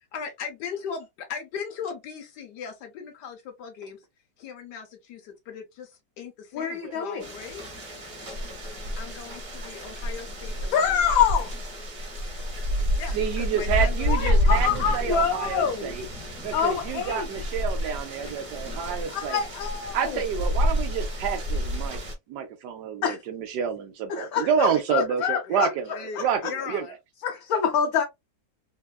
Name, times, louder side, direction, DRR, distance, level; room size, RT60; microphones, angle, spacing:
voice 1, 0.1-4.0 4.4-7.6 9.0-11.2 13.0-14.7 25.5-26.2 26.5-26.9, left 6 dB, 85° left, 1.3 m, -38 dB
voice 2, 6.5-7.2 10.7-11.5 14.1-15.9 16.5-17.3 19.1-20.2 23.0-23.2 24.1-25.7 26.2-26.3 27.2-28.0, left 7 dB, 70° left, 1.0 m, -26 dB
sound 1, 7.2-22.1, equal, 45° right, 1.0 m, -29 dB
voice 3, 13.1-19.4 19.9-22.0 22.3-26.8, right 8 dB, 85° right, 1.2 m, -29 dB
3.5 x 2.3 x 2.2 m
omnidirectional pair, 1.7 m